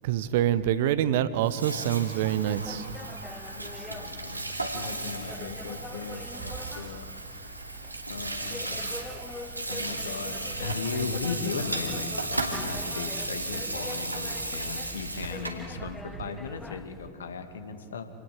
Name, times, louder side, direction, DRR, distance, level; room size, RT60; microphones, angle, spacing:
voice 1, 0.0-2.8, right 11 dB, 50° right, 14 dB, 1.1 m, -26 dB
Water tap faucet / Sink (filling or washing), 1.4-15.7, right 2 dB, 85° right, 2.8 m, -35 dB
sound 1, 2.4-17.1, left 2 dB, 10° left, 1.3 m, -44 dB
voice 2, 3.5-7.1 8.1-8.8 9.7-18.1, left 5 dB, 70° left, 7 dB, 2.2 m, -37 dB
28.0 x 20.0 x 7.7 m, 2.4 s
figure-of-eight pair, 90°, 0 cm